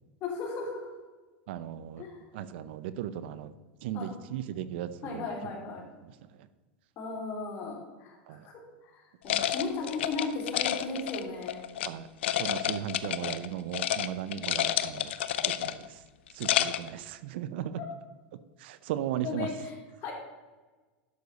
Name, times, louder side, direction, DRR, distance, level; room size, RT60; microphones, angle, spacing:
voice 1, 0.2-0.9 2.0-2.2 3.9-4.1 5.0-5.8 7.0-11.6 17.8-17.9 19.2-20.1, left 4 dB, 40° left, -1 dB, 3.1 m, -36 dB
voice 2, 1.5-2.0 2.3-3.5 3.8-5.2 8.3-8.4 11.8-12.1 12.4-15.1 15.5-15.9 16.4-17.8 18.6-19.5, right 10 dB, 70° right, 14 dB, 0.6 m, -36 dB
sound 1, 9.3-11.9 12.2-13.5 13.7-14.1 14.3-15.9 16.3-16.9, left 11 dB, 90° left, 0.6 m, -29 dB
11.5 x 6.5 x 4.1 m, 1.3 s
supercardioid pair, 135°, 6 cm